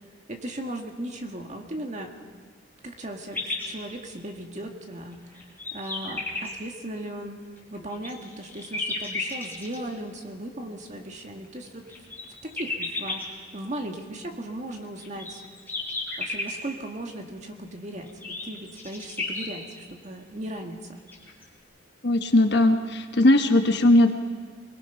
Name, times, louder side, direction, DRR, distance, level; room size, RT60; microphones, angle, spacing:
voice 1, 0.3-2.1 2.8-5.4 5.7-7.4 7.7-11.9 12.4-15.4 16.2-21.0, right 1 dB, 40° right, 3 dB, 1.9 m, -37 dB
sound 1, 3.3-3.7 4.4-4.5 5.1-6.5 7.6-9.8 11.4-13.2 14.7-16.6 18.0-19.5 20.7-20.8 21.1-21.4, left 3 dB, 10° left, 3.8 m, -32 dB
voice 2, 22.0-24.1, left 1 dB, 60° left, 6 dB, 1.2 m, -19 dB
23.0 x 20.0 x 5.8 m, 1.5 s
head